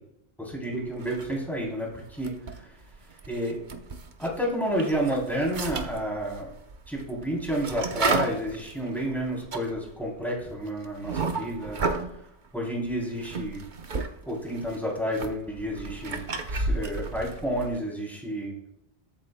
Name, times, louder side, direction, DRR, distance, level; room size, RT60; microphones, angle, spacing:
voice 1, 0.5-2.7 3.3-3.6 4.2-6.5 6.9-12.1 12.5-13.6 14.2-16.2 16.5-18.5, equal, ahead, -3 dB, 3.3 m, -30 dB
sound 1, 1.0-1.7 2.1-4.4 4.7-12.2 12.9-14.1 14.4-17.8, right 3 dB, 45° right, 0.9 m, -33 dB
20.5 x 8.7 x 2.2 m, 0.80 s
omnidirectional pair, 1.2 m